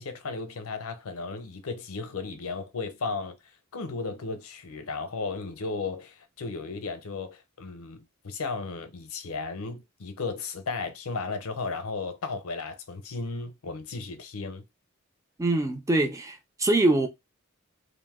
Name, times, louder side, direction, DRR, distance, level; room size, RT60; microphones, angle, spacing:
voice 1, 0.0-3.3 3.7-14.6, left 4 dB, 85° left, 0.6 m, -35 dB
voice 2, 15.4-17.1, right 2 dB, 15° right, 0.4 m, -24 dB
2.6 x 2.0 x 3.5 m
head